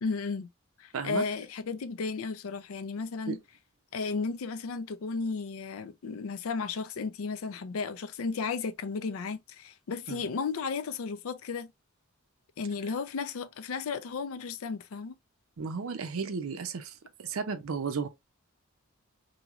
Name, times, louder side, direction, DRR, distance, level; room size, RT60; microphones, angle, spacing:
voice 1, 0.0-0.5 0.8-3.4 3.9-11.7 12.6-15.2, left 4 dB, 80° left, 0.4 m, -34 dB
voice 2, 0.9-1.2 3.3-3.4 10.1-10.2 15.6-16.9 17.2-18.1, right 5 dB, 80° right, 0.5 m, -33 dB
3.0 x 2.7 x 2.4 m
head